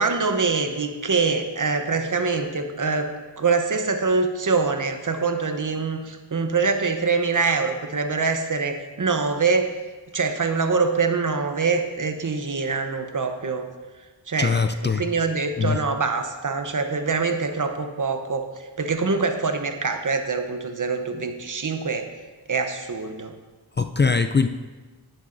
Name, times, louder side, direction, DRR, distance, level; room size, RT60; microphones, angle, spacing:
voice 1, 0.0-3.1 3.4-9.7 10.1-13.7 14.3-14.6 14.8-22.1 22.5-23.3, right 4 dB, 45° right, 6 dB, 0.9 m, -24 dB
voice 2, 14.4-15.0 15.6-15.8 23.8-24.5, left 5 dB, 30° left, 8 dB, 0.4 m, -21 dB
10.5 x 9.9 x 2.6 m, 1.3 s
wide cardioid pair, 60°, 42 cm